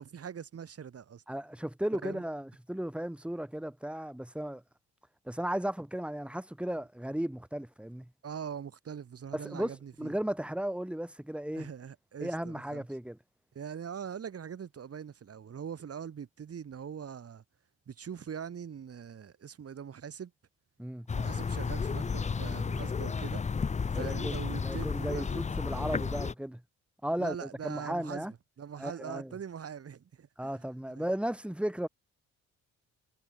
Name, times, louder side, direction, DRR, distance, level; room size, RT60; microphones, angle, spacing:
voice 1, 0.0-1.2 2.0-2.2 8.2-10.1 11.5-12.8 13.5-17.4 17.9-20.3 21.1-23.4 23.9-25.4 27.2-28.3 28.6-30.6 30.9-31.1, right 7 dB, 50° right, 6.3 m, -42 dB
voice 2, 1.3-4.6 5.2-8.1 9.3-11.7 12.2-13.2 20.8-21.1 23.9-26.6 27.0-28.3 28.8-29.3 30.4-31.9, right 1 dB, 5° right, 6.6 m, -35 dB
sound 1, 21.1-26.3, left 5 dB, 25° left, 0.7 m, -32 dB
cardioid pair, 90°, 30 cm